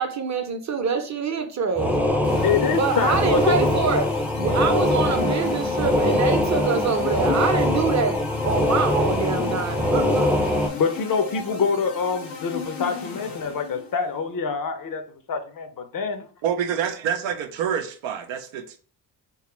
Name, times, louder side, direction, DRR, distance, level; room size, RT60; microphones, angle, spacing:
voice 1, 0.0-2.0 2.7-10.3, right 5 dB, 40° right, 7 dB, 0.7 m, -25 dB
sound 1, 1.8-10.7, left 1 dB, 5° right, 0.4 m, -22 dB
sound 2, 2.2-14.0, left 5 dB, 80° left, 0.9 m, -35 dB
voice 2, 2.4-3.6 10.8-15.0 15.3-16.3, left 5 dB, 45° left, 8 dB, 0.6 m, -25 dB
voice 3, 16.4-18.8, right 8 dB, 80° right, 7 dB, 0.6 m, -27 dB
3.1 x 2.3 x 3.0 m, 0.41 s
hypercardioid pair, 45°, 46 cm